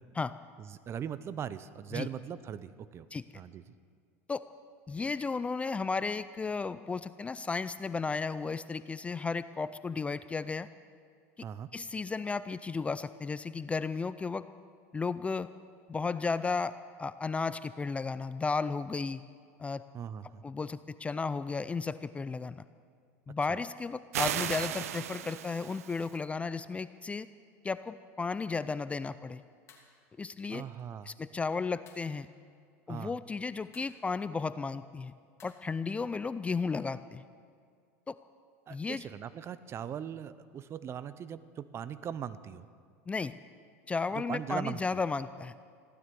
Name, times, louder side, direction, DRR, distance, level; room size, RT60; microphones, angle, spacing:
voice 1, 0.6-3.1 3.3-3.6 11.4-11.7 19.9-20.4 23.5-23.6 30.5-31.1 32.9-33.1 38.7-42.7 44.1-44.8, right 8 dB, 35° right, 15 dB, 0.7 m, -40 dB
voice 2, 4.9-10.7 11.7-14.5 14.9-15.5 15.9-19.2 19.6-19.8 20.4-22.6 23.3-27.3 27.6-29.4 30.2-30.6 31.1-32.3 32.9-35.1 35.4-37.2 38.1-38.2 38.7-39.0 43.1-43.4 43.9-45.5, left 4 dB, 15° left, 14 dB, 0.4 m, -34 dB
sound 1, 24.1-26.2, right 11 dB, 90° right, 0.6 m, -35 dB
sound 2, 29.7-29.9 31.9-32.2 33.7-34.0 35.4-35.5, left 6 dB, 35° left, 2.9 m, -57 dB
15.5 x 12.5 x 7.0 m, 2.2 s
supercardioid pair, 105°, 8 cm